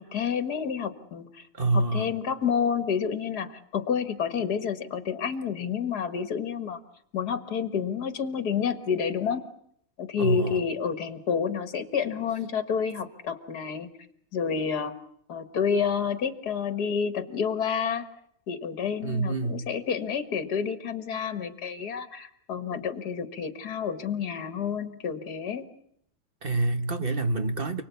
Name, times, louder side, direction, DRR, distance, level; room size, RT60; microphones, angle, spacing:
voice 1, 0.0-1.4 1.7-6.8 7.1-9.4 10.0-13.9 14.3-14.9 15.3-18.1 18.5-25.7, left 6 dB, 80° left, 9 dB, 2.2 m, -29 dB
voice 2, 1.5-2.1 10.2-10.6 19.0-19.6 26.4-27.8, right 2 dB, 35° right, 8 dB, 1.5 m, -26 dB
29.5 x 20.0 x 8.4 m, 0.71 s
omnidirectional pair, 1.7 m